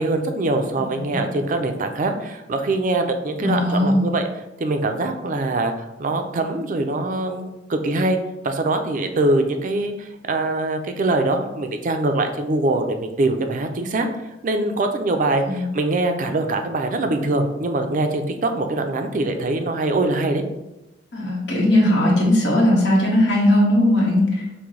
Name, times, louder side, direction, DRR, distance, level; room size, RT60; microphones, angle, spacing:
voice 1, 0.0-4.3 4.6-8.2 8.4-14.1 14.4-20.4, right 2 dB, 45° right, 6 dB, 0.4 m, -23 dB
voice 2, 3.4-4.1 15.4-15.6 21.1-24.3, left 1 dB, 90° left, -5 dB, 1.2 m, -18 dB
5.9 x 2.1 x 3.1 m, 0.96 s
head